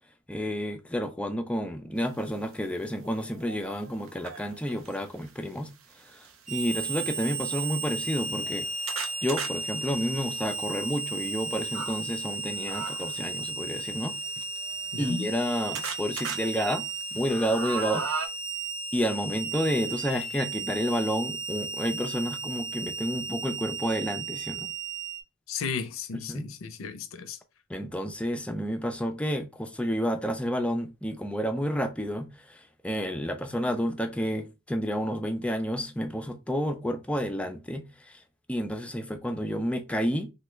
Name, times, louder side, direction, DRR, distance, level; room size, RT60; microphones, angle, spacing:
voice 1, 0.3-5.7 6.0-8.7 9.2-14.2 15.0-18.0 18.9-24.7 26.3-26.5 27.7-38.2 38.5-40.3, equal, 5° left, 0.3 m, -30 dB
sound 1, 2.3-2.4 3.0-4.9 5.9-6.3 7.0-7.1 7.3-7.4 8.0-12.0 12.7-13.3 14.2-15.4 15.7-16.4 16.8-18.3, right 6 dB, 85° right, 0.5 m, -38 dB
Harmonica, 6.5-25.2, right 3 dB, 35° right, 0.7 m, -35 dB
voice 2, 14.9-15.3 25.5-27.4, left 5 dB, 75° left, 0.5 m, -34 dB
3.2 x 2.2 x 3.0 m
head